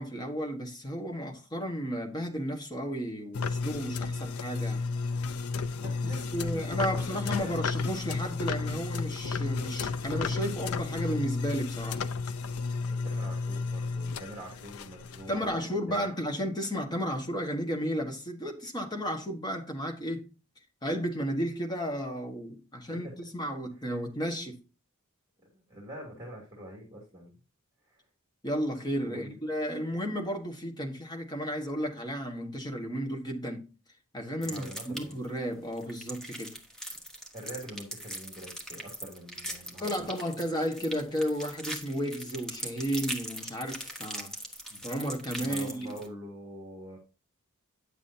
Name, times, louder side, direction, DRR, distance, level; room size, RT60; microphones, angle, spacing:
voice 1, 0.0-4.9 6.0-12.1 15.3-20.3 20.8-24.6 28.4-33.7 34.1-36.6 39.8-44.4 44.7-46.0, equal, 20° left, 1.4 m, -33 dB
sound 1, 3.3-15.5, left 4 dB, 85° left, 0.5 m, -33 dB
voice 2, 5.8-7.6 12.8-16.1 25.7-27.3 27.9-28.0 29.1-29.3 34.4-35.2 37.3-40.1 45.4-47.0, right 1 dB, 15° right, 2.8 m, -44 dB
sound 2, 34.4-35.3 35.7-46.1, right 1 dB, 5° left, 1.3 m, -40 dB
9.8 x 7.3 x 2.8 m
head